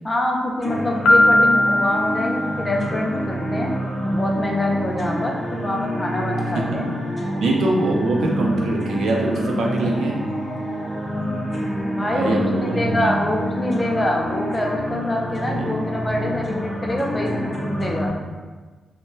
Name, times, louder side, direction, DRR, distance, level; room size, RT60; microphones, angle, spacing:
voice 1, 0.0-3.7 4.1-6.9 11.9-17.3 17.6-18.1, left 1 dB, 15° left, 0 dB, 0.3 m, -25 dB
sound 1, 0.6-18.1, equal, 15° right, 1.3 m, -27 dB
Piano, 1.1-3.0, left 1 dB, 90° left, 0.3 m, -18 dB
voice 2, 6.5-6.9 7.4-10.2 12.1-12.8 13.1-13.2 15.4-15.7 18.1-18.2, right 2 dB, 80° right, 0 dB, 0.4 m, -23 dB
3.6 x 2.1 x 2.6 m, 1.3 s
wide cardioid pair, 160°, 0 cm